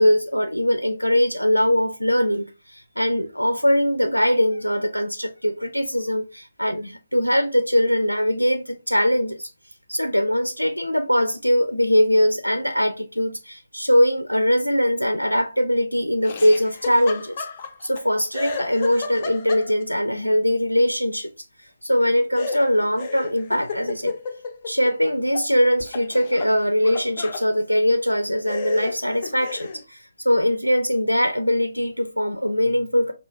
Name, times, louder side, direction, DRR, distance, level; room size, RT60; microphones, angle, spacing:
voice 1, 0.0-9.5 9.9-17.5 17.8-21.3 21.8-24.2 24.7-33.1, equal, 90° left, 0.4 m, -21 dB
Laughter, 16.2-18.0 18.3-20.0 22.4-25.5 25.8-27.5 28.1-28.2 28.5-29.8, left 4 dB, 35° left, 0.5 m, -33 dB
4.8 x 2.4 x 2.6 m
figure-of-eight pair, 140°, 0 cm